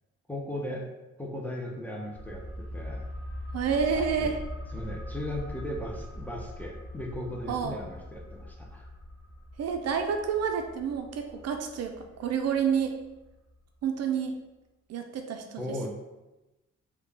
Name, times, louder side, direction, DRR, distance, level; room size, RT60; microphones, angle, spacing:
voice 1, 0.3-0.9 1.2-3.1 3.9-4.3 4.7-8.9 15.6-15.9, left 1 dB, 5° left, 0 dB, 0.5 m, -37 dB
sound 1, 2.2-13.5 13.8-13.9, left 1 dB, 40° left, 0.8 m, -41 dB
voice 2, 3.5-4.4 7.5-7.8 9.6-12.9 13.8-14.4 14.9-15.9, right 7 dB, 55° right, 5 dB, 0.4 m, -29 dB
3.6 x 2.3 x 3.2 m, 1.0 s
cardioid pair, 90°, 30 cm